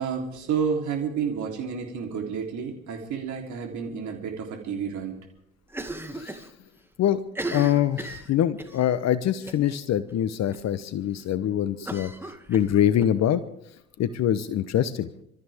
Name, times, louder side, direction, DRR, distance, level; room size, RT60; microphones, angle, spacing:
voice 1, 0.0-5.2, right 6 dB, 55° right, 1 dB, 3.5 m, -30 dB
Cough, 5.7-6.5 6.8-6.9 7.3-8.8 9.5-9.8 10.1-10.2 10.5-10.6 11.8-13.1, right 2 dB, 5° right, 2.2 m, -36 dB
voice 2, 7.5-12.1 12.5-13.4 14.0-15.1, left 11 dB, 50° left, 14 dB, 1.0 m, -24 dB
27.0 x 14.0 x 3.6 m, 0.77 s
hypercardioid pair, 65°, 35 cm